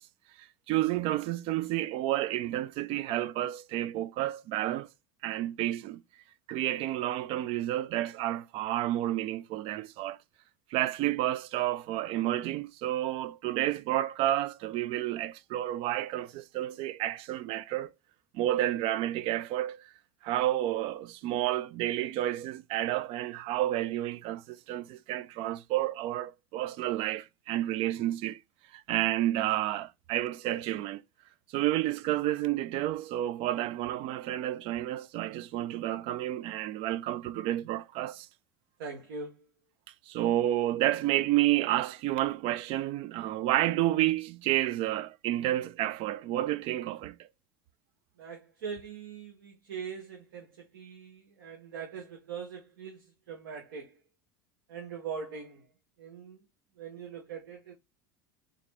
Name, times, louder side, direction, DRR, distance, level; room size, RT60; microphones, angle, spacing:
voice 1, 0.7-4.9 5.2-6.0 6.5-10.2 10.7-17.9 18.3-19.9 20.2-28.4 28.7-31.0 31.5-38.3 40.1-47.2, right 14 dB, 50° right, 0.5 m, -30 dB
voice 2, 38.8-39.5 48.2-54.0 54.7-55.7 56.0-56.4 56.8-57.7, right 6 dB, 70° right, 1.0 m, -42 dB
3.9 x 3.1 x 3.3 m
hypercardioid pair, 75°, 12 cm